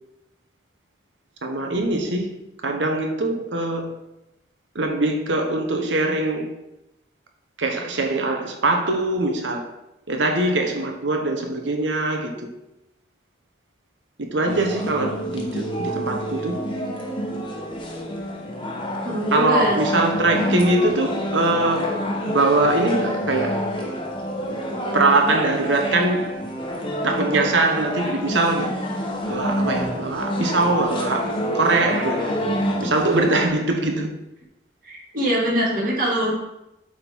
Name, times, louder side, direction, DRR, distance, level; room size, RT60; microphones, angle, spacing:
voice 1, 1.4-2.3 2.6-3.9 4.7-6.5 7.6-9.7 10.1-12.5 14.2-16.6 19.3-23.6 24.9-26.4 27.0-28.7 29.3-32.3 32.8-34.1, right 2 dB, 85° right, 1.1 m, -22 dB
sound 1, 14.5-33.5, equal, 25° left, 0.9 m, -28 dB
voice 2, 19.0-19.8 34.8-36.3, equal, 45° right, 2.4 m, -23 dB
8.4 x 3.8 x 4.6 m
head